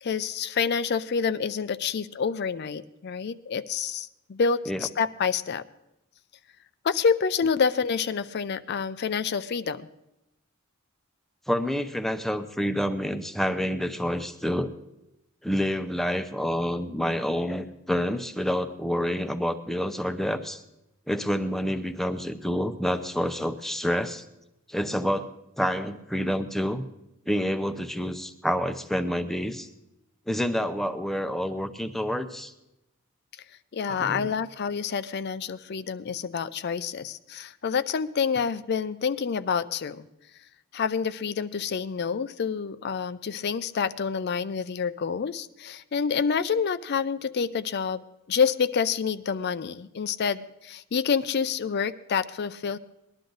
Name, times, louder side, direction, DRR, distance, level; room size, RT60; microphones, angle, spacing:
voice 1, 0.0-5.6 6.8-9.9 33.7-40.1 40.7-48.0 48.3-52.8, left 6 dB, 50° left, 14 dB, 0.4 m, -28 dB
voice 2, 11.5-14.7 15.4-20.6 21.1-24.2 24.7-25.3 25.6-26.8 27.3-29.7 30.3-32.5 33.9-34.3, equal, ahead, 9 dB, 0.6 m, -28 dB
20.0 x 11.5 x 3.9 m, 0.90 s
head